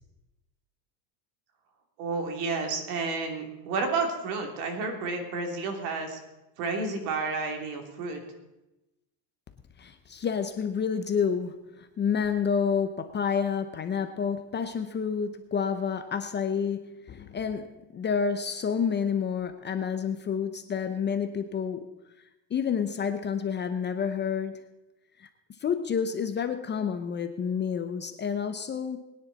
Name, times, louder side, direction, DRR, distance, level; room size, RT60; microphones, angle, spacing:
voice 1, 2.0-6.2 6.6-8.2, right 4 dB, 80° right, 4 dB, 3.1 m, -31 dB
voice 2, 9.8-21.9 22.5-24.6 25.2-25.3 25.6-29.0, left 6 dB, 25° left, 8 dB, 0.7 m, -29 dB
22.0 x 9.8 x 4.1 m, 0.98 s
cardioid pair, 140°, 47 cm